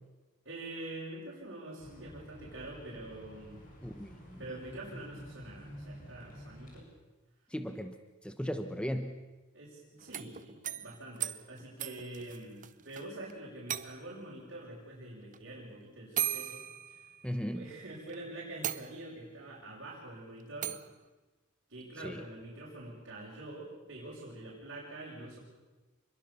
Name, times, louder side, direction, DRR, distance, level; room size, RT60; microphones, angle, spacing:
voice 1, 0.4-3.6 4.4-6.9 9.5-16.6 16.9-17.0 17.5-20.8 21.7-25.4, right 1 dB, 55° right, -6 dB, 6.2 m, -45 dB
sound 1, 1.8-6.8, equal, 40° left, 7.4 m, -50 dB
voice 2, 3.8-4.4 7.5-8.0 8.2-9.1 17.2-17.6 22.0-22.2, equal, 5° left, 8 dB, 1.0 m, -36 dB
sound 2, 10.0-13.0 13.3-13.4 13.7-14.3 15.3-15.4 16.2-17.6 18.1-18.2 18.6-19.3 20.6-20.9, right 11 dB, 40° right, 0.8 m, -38 dB
27.5 x 22.0 x 7.0 m, 1.2 s
head